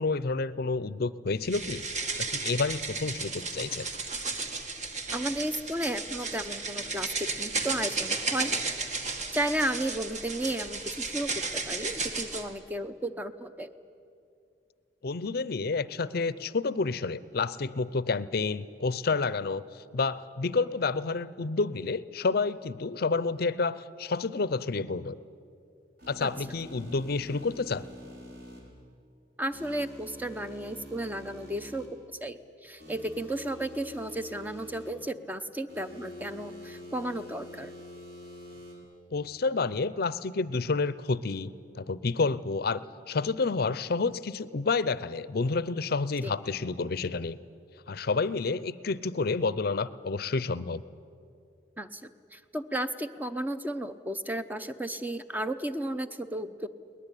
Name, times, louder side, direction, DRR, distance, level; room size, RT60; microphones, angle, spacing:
voice 1, 0.0-1.8 2.2-3.9 15.0-25.2 26.1-27.8 39.1-42.8 43.1-47.4 47.9-50.8, left 4 dB, 60° left, 17 dB, 0.6 m, -29 dB
sound 1, 1.4-12.5, right 3 dB, 40° right, 1.8 m, -34 dB
voice 2, 5.1-8.6 9.3-13.7 26.2-26.3 29.4-37.7 46.2-46.3 51.8-56.7, right 1 dB, 10° right, 10 dB, 0.7 m, -34 dB
sound 2, 26.0-28.6 29.5-31.9 32.8-34.9 35.7-38.7, equal, 60° right, 5.8 m, -46 dB
21.5 x 19.0 x 9.9 m, 2.5 s
head